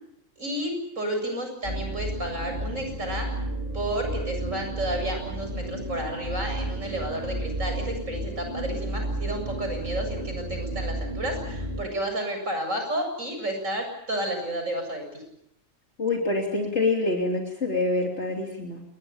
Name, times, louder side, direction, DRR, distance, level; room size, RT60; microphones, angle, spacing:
voice 1, 0.4-3.3 3.7-15.2, right 1 dB, 75° right, 4 dB, 8.0 m, -31 dB
sound 1, 1.6-11.8, right 1 dB, 35° right, 7.1 m, -32 dB
voice 2, 16.0-18.8, left 2 dB, 55° left, 1 dB, 3.4 m, -26 dB
27.5 x 22.0 x 7.2 m, 0.78 s
omnidirectional pair, 1.4 m